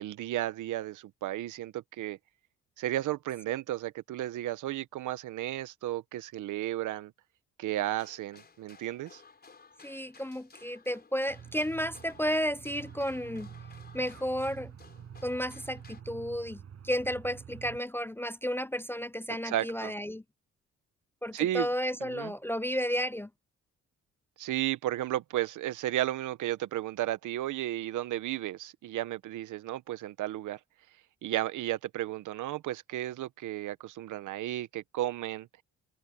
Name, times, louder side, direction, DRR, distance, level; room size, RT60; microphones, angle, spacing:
voice 1, 0.0-2.2 2.8-7.1 7.6-9.2 19.4-19.9 21.3-21.7 22.0-22.3 24.4-30.6 31.2-35.5, right 14 dB, 80° right, 1.1 m, -33 dB
sound 1, 7.8-16.0, left 4 dB, 30° left, 4.7 m, -57 dB
voice 2, 9.8-13.5 13.9-14.7 15.2-20.2 21.2-23.3, equal, 10° left, 0.4 m, -32 dB
Aircraft, 11.3-17.8, right 8 dB, 55° right, 7.8 m, -48 dB
cardioid pair, 90°, 30 cm